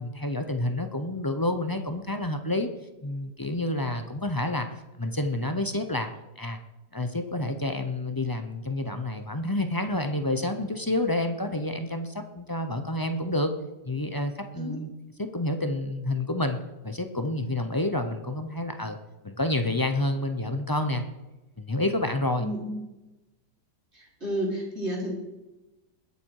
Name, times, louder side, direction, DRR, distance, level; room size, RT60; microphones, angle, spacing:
voice 1, 0.0-2.7 3.0-4.7 5.0-6.1 6.4-6.6 6.9-13.5 13.8-14.9 15.2-16.6 16.8-19.0 19.2-21.0 21.6-22.5, left 1 dB, 25° left, 7 dB, 0.5 m, -29 dB
voice 2, 22.4-22.8 23.9-25.1, equal, 40° right, -4 dB, 4.1 m, -31 dB
21.0 x 8.4 x 4.8 m, 1.0 s
omnidirectional pair, 1.8 m